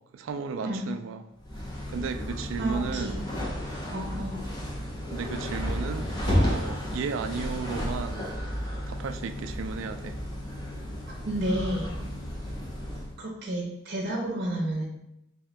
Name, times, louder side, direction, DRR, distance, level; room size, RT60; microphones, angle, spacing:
voice 1, 0.1-1.2 1.9-3.3 5.1-8.3 8.9-10.2, right 5 dB, 80° right, 8 dB, 0.3 m, -34 dB
sound 1, 1.4-13.1, equal, 20° left, 0.6 m, -32 dB
voice 2, 2.6-3.1 3.9-4.4 11.2-11.9 13.2-14.8, right 1 dB, 55° right, -2 dB, 0.7 m, -31 dB
3.7 x 2.8 x 3.3 m, 0.86 s
head